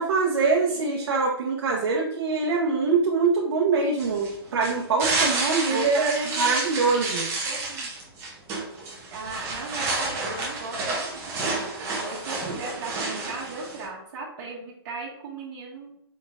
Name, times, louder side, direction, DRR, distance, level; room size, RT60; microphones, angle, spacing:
voice 1, 0.0-6.1 6.4-7.3, right 4 dB, 65° right, -1 dB, 0.8 m, -24 dB
sound 1, 4.0-13.9, right 3 dB, 20° right, 0.9 m, -30 dB
voice 2, 5.7-6.5 7.4-7.9 9.1-15.9, right 2 dB, 45° right, -5 dB, 1.6 m, -37 dB
4.5 x 3.7 x 2.5 m, 0.75 s
hypercardioid pair, 165°, 14 cm